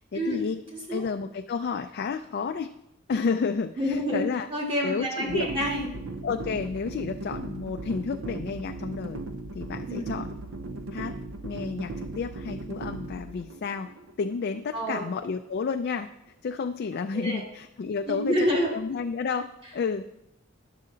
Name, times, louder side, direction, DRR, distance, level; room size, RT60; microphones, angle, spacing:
voice 1, 0.1-0.6 0.9-2.7 3.1-4.5 4.8-5.5 6.2-9.2 9.5-10.3 10.9-11.2 11.4-13.9 14.2-16.1 16.4-19.5 19.7-20.0, left 5 dB, 50° left, 6 dB, 0.3 m, -31 dB
voice 2, 3.8-4.2 4.5-5.9 9.9-10.2 14.7-15.0 17.1-17.4 18.1-18.7, equal, 25° right, -2 dB, 1.7 m, -28 dB
sound 1, 5.3-15.3, right 2 dB, 65° right, 0.5 m, -38 dB
9.9 x 6.5 x 3.8 m, 0.85 s
head